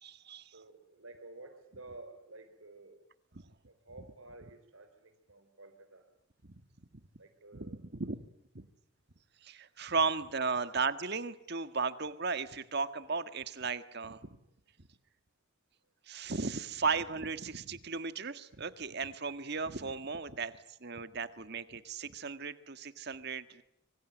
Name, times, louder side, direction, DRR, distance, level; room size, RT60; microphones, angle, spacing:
voice 1, 0.0-0.5 3.3-3.4 6.4-6.6 6.9-7.0 7.5-8.3 8.5-8.7 9.4-14.2 16.0-23.6, right 4 dB, 50° right, 12 dB, 1.6 m, -36 dB
voice 2, 0.5-3.0 3.6-6.1 7.2-7.8 10.7-10.8, right 2 dB, 85° right, 7 dB, 4.3 m, -52 dB
26.0 x 24.5 x 9.1 m, 0.77 s
head